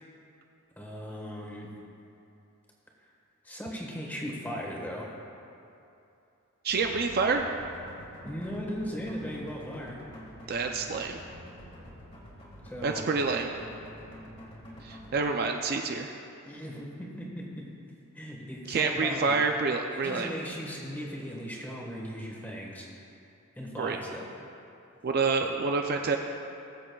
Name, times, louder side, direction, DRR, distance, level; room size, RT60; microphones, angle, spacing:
voice 1, 0.8-1.7 3.4-5.1 8.2-10.0 12.6-13.1 16.4-17.6 18.1-19.4 19.9-22.9 23.5-24.2 25.4-25.5, equal, 10° left, -3 dB, 1.4 m, -38 dB
voice 2, 6.6-7.5 10.5-11.2 12.8-13.5 14.8-16.1 18.7-20.3 23.8-24.0 25.0-26.2, right 4 dB, 45° right, 3 dB, 0.4 m, -28 dB
sound 1, 6.7-15.2, equal, 25° left, 1.9 m, -47 dB
20.0 x 7.5 x 2.3 m, 2.7 s
head